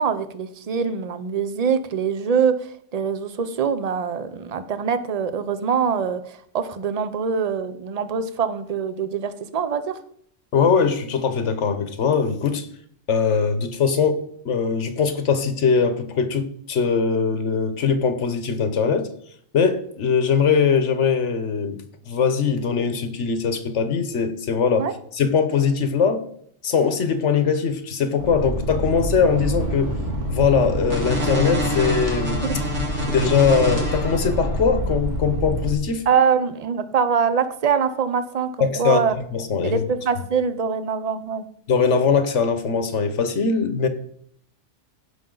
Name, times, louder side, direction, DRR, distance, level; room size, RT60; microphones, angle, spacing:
voice 1, 0.0-9.9 24.8-24.9 32.4-32.6 36.1-39.1 39.6-41.5, right 6 dB, 40° right, 0.7 m, -24 dB
voice 2, 10.5-12.7 13.1-19.1 19.5-21.8 22.1-24.9 25.1-26.2 26.6-29.9 30.3-32.5 33.1-36.0 38.6-39.8 41.7-43.9, left 6 dB, 70° left, 1.2 m, -21 dB
sound 1, 28.2-35.7, equal, 70° right, 2.3 m, -25 dB
16.0 x 5.6 x 3.8 m
omnidirectional pair, 1.3 m